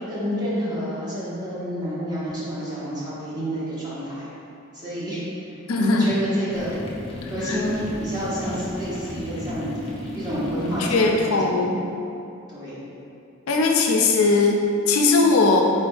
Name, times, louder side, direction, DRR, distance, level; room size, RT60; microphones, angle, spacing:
voice 1, 0.1-4.3 4.7-5.2 5.4-6.7 7.3-9.7 10.1-11.7 12.5-12.7, equal, 20° right, -10 dB, 1.0 m, -29 dB
voice 2, 5.7-6.1 7.2-7.6 10.8-11.8 13.5-15.6, left 3 dB, 85° left, 1 dB, 0.4 m, -19 dB
sound 1, 6.5-11.6, left 1 dB, 25° left, 0.4 m, -35 dB
4.4 x 3.4 x 2.3 m, 2.7 s
head